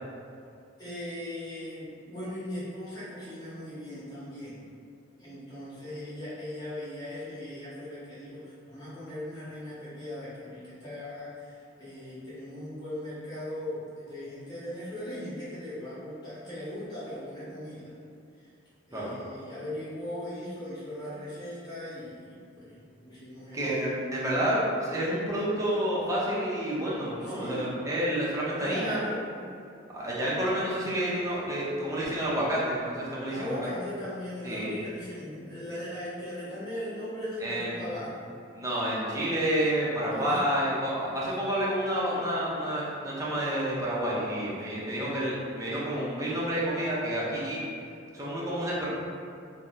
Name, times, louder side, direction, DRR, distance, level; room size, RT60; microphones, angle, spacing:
voice 1, 0.8-4.6 5.2-17.9 18.4-18.5 18.9-23.7 27.2-27.7 28.5-29.2 33.2-38.3 40.1-40.5, left 1 dB, 20° left, -11 dB, 1.0 m, -39 dB
voice 2, 23.5-29.0 29.9-33.7 34.4-34.7 37.4-37.7 38.5-47.6 48.1-48.9, right 1 dB, 15° right, -7 dB, 0.6 m, -29 dB
2.7 x 2.0 x 3.6 m, 2.5 s
head